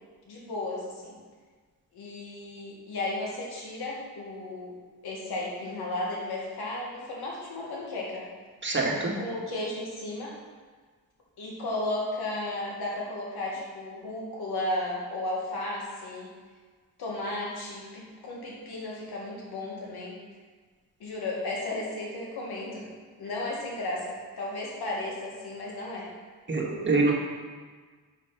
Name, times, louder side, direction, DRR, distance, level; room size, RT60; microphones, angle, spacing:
voice 1, 0.3-1.2 1.9-4.7 5.0-8.3 9.2-10.3 11.4-16.3 17.0-20.2 21.0-22.9 23.2-26.1, left 2 dB, 80° left, -3 dB, 2.0 m, -34 dB
voice 2, 8.6-9.1 26.5-27.1, right 3 dB, 30° right, -2 dB, 1.8 m, -25 dB
6.3 x 5.3 x 5.9 m, 1.5 s
cardioid pair, 75°, 38 cm